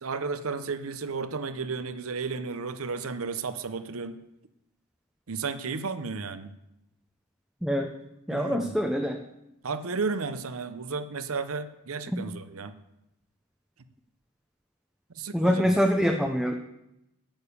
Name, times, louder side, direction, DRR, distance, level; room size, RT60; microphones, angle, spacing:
voice 1, 0.0-4.2 5.3-6.5 8.3-8.8 9.6-12.7 15.2-15.7, right 4 dB, 75° right, 12 dB, 0.8 m, -33 dB
voice 2, 7.6-7.9 8.3-9.2 12.1-12.2 15.3-16.5, equal, ahead, 3 dB, 0.6 m, -25 dB
9.0 x 7.2 x 8.4 m, 0.87 s
head